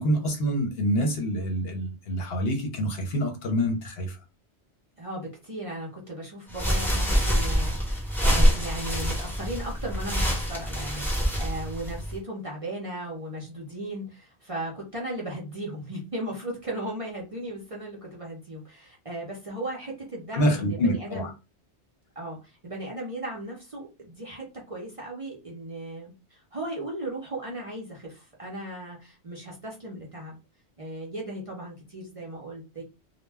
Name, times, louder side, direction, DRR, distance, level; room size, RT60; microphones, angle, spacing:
voice 1, 0.0-4.2 20.3-21.3, equal, 65° left, 0.8 m, -26 dB
voice 2, 5.0-21.3 22.2-30.4 30.8-32.8, right 1 dB, 35° right, 0.6 m, -36 dB
sound 1, 6.5-12.2, equal, ahead, 0.7 m, -25 dB
2.2 x 2.1 x 3.3 m
omnidirectional pair, 1.2 m